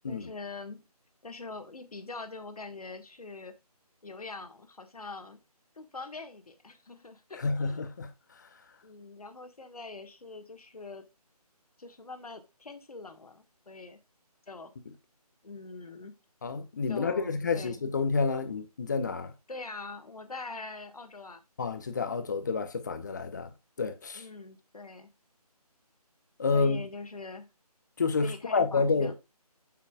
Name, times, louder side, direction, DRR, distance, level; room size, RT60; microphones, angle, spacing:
voice 1, 0.1-0.8 1.2-3.6 4.0-5.4 5.7-7.8 8.8-11.0 11.8-14.0 14.5-14.7 15.4-16.1 16.9-17.8 19.5-21.4 24.1-25.1 26.5-27.5 28.2-29.1, left 3 dB, 65° left, 1.4 m, -43 dB
voice 2, 7.3-8.5 16.4-19.3 21.6-23.5 23.8-24.2 26.4-26.8 28.0-29.1, left 4 dB, 30° left, 0.8 m, -29 dB
8.0 x 5.7 x 2.2 m
figure-of-eight pair, 155°, 20 cm